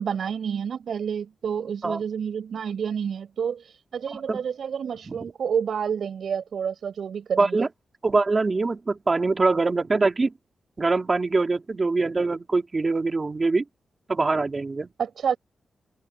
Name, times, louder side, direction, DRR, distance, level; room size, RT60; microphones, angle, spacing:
voice 1, 0.0-7.7 15.0-15.4, right 7 dB, 70° right, 5.9 m, -29 dB
voice 2, 4.1-4.4 7.4-7.7 8.0-10.3 10.8-13.6 14.1-14.9, right 3 dB, 30° right, 3.0 m, -23 dB
wide cardioid pair, 165°, 0 cm